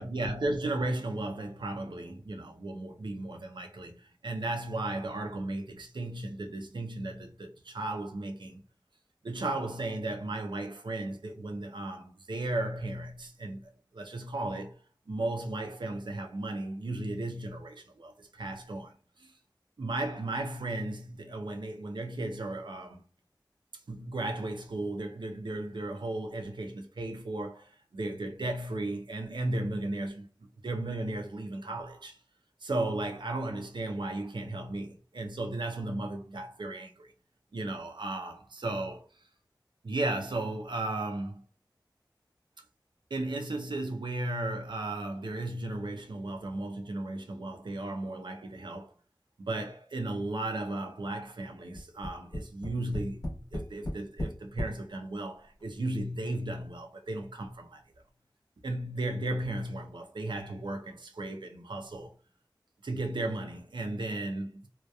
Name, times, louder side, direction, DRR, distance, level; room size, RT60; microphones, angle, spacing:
voice 1, 0.0-8.6 9.2-14.7 15.1-19.3 19.8-23.0 23.9-30.3 30.6-32.2 32.6-37.1 37.5-39.0 39.8-41.4 43.1-48.9 49.4-57.8 58.6-62.1 62.8-64.7, right 2 dB, 75° right, 0.5 m, -35 dB
Tap, 51.7-54.8 55.6-55.7 56.0-56.1, equal, 55° left, 0.9 m, -36 dB
2.8 x 2.2 x 2.2 m
wide cardioid pair, 50°, 8 cm